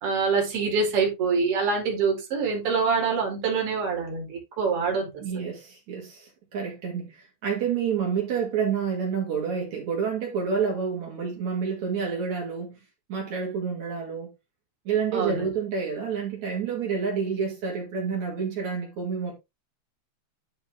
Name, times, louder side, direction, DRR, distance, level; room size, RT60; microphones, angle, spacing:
voice 1, 0.0-5.1 15.1-15.5, right 5 dB, 50° right, 3.5 m, -25 dB
voice 2, 5.2-12.8 13.1-14.3 14.9-19.3, right 6 dB, 70° right, 3.4 m, -29 dB
10.5 x 4.6 x 3.6 m
omnidirectional pair, 3.4 m